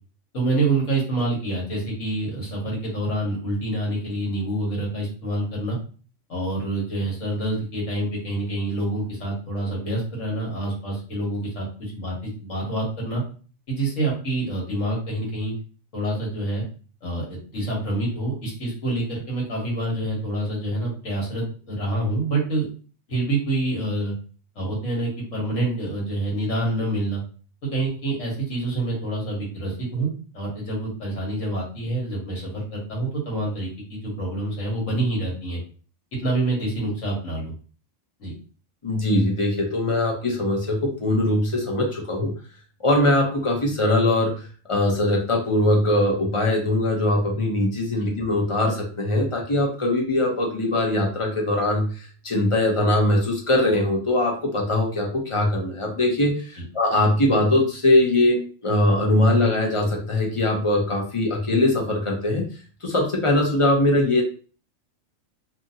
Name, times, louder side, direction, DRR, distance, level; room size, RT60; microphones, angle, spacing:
voice 1, 0.3-5.8 6.3-13.2 13.7-15.5 15.9-16.6 17.0-22.7 23.1-24.1 24.5-27.2 27.6-35.6 36.2-37.5 38.2-38.3, right 2 dB, 75° left, -2 dB, 1.5 m, -27 dB
voice 2, 38.8-42.3 42.8-62.5 62.8-64.2, left 1 dB, 35° left, -1 dB, 0.5 m, -21 dB
2.7 x 2.6 x 2.6 m, 0.39 s
omnidirectional pair, 1.3 m